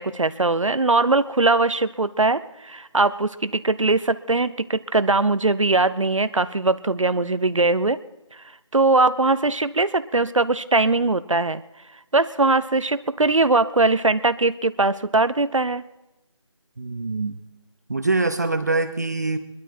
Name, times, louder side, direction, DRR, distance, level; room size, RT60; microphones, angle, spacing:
voice 1, 0.0-8.0 8.7-11.6 12.1-15.8, right 3 dB, 80° right, 14 dB, 0.8 m, -21 dB
voice 2, 16.8-17.4 17.9-19.4, right 3 dB, 35° right, 9 dB, 0.7 m, -24 dB
22.0 x 12.5 x 4.4 m, 0.97 s
figure-of-eight pair, 165°, 16 cm